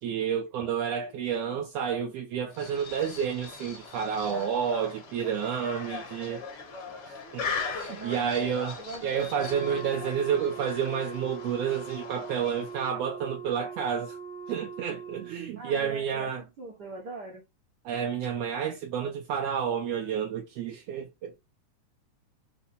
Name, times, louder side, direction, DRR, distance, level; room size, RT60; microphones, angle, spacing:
voice 1, 0.0-6.4 7.1-8.8 9.0-14.2 14.5-16.4 17.8-21.4, right 7 dB, 75° right, 1.5 m, -30 dB
sound 1, 2.5-12.9, left 4 dB, 55° left, 1.9 m, -40 dB
voice 2, 7.9-9.3 15.6-17.4, right 3 dB, 60° right, 1.0 m, -41 dB
Wind instrument woodwind instrument, 9.3-15.5, right 4 dB, 80° left, 2.3 m, -41 dB
5.6 x 2.1 x 4.0 m
omnidirectional pair, 3.5 m